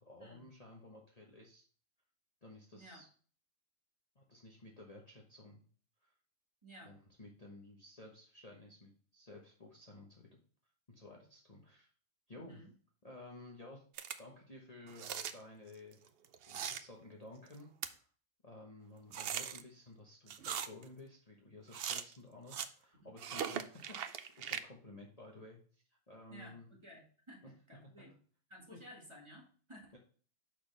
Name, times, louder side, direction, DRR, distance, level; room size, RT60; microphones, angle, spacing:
voice 1, 0.0-1.6 2.4-3.1 4.1-5.6 6.0-6.1 6.8-10.4 10.9-11.9 12.3-12.6 13.0-13.8 14.2-16.0 16.5-18.1 18.4-26.7 27.4-27.5 27.8-28.0 28.7-28.8 29.9-30.0, left 2 dB, 30° left, -1 dB, 1.2 m, -54 dB
voice 2, 6.6-6.9 12.4-12.7 22.9-23.1 26.3-28.2 28.5-29.9, equal, 20° right, -2 dB, 2.1 m, -55 dB
sound 1, 14.0-14.2 14.9-15.4 16.2-16.8 17.5-17.6 17.8-17.9 19.1-19.6 20.3-20.8 21.7-22.2 22.5-22.7 23.2-24.6, right 8 dB, 60° right, 0.6 m, -40 dB
6.4 x 6.1 x 3.4 m, 0.42 s
omnidirectional pair, 1.5 m